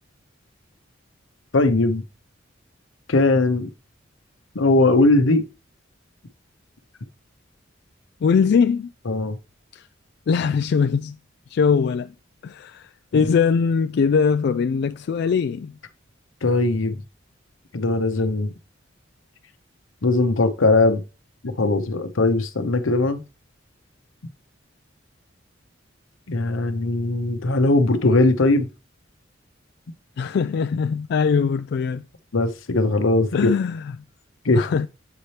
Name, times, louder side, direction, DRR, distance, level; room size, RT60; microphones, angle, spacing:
voice 1, 1.5-2.0 3.1-3.7 4.5-5.5 9.1-9.4 13.1-13.3 16.4-17.0 17.7-18.5 20.0-21.0 21.4-23.2 26.3-28.7 32.3-33.5 34.4-34.7, left 2 dB, 85° left, 0.8 m, -19 dB
voice 2, 8.2-8.9 9.7-9.9 10.3-11.2 11.5-12.1 12.4-15.7 30.2-32.0 33.3-33.9 34.5-34.9, left 6 dB, 55° left, 0.3 m, -21 dB
8.0 x 4.3 x 3.2 m
head